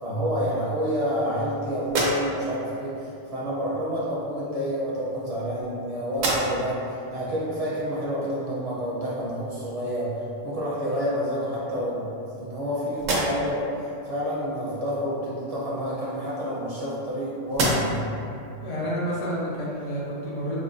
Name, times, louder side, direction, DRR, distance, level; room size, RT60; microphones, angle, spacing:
voice 1, 0.0-13.7 14.0-18.0, equal, 40° right, -8 dB, 0.6 m, -29 dB
sound 1, 1.8-2.7 3.8-3.9 4.9-5.8 6.1-6.8 7.3-7.4 10.1-10.2 10.6-11.3 11.9-12.6 12.9-13.7 15.7-17.1 17.5-18.2, right 1 dB, 85° right, 1.0 m, -30 dB
voice 2, 18.6-20.6, equal, 75° left, -7 dB, 1.2 m, -29 dB
4.6 x 2.1 x 2.5 m, 2.7 s
omnidirectional pair, 1.3 m